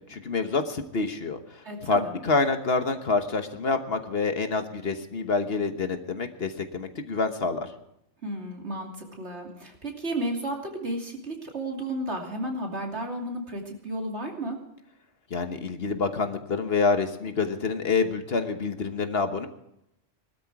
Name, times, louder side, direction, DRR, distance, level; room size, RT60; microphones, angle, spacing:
voice 1, 0.1-7.7 15.3-19.5, left 4 dB, 55° left, 7 dB, 1.4 m, -27 dB
voice 2, 1.6-2.1 8.2-8.9 9.2-14.6, right 1 dB, 60° right, 1 dB, 3.1 m, -33 dB
20.0 x 13.0 x 4.8 m, 0.81 s
omnidirectional pair, 1.3 m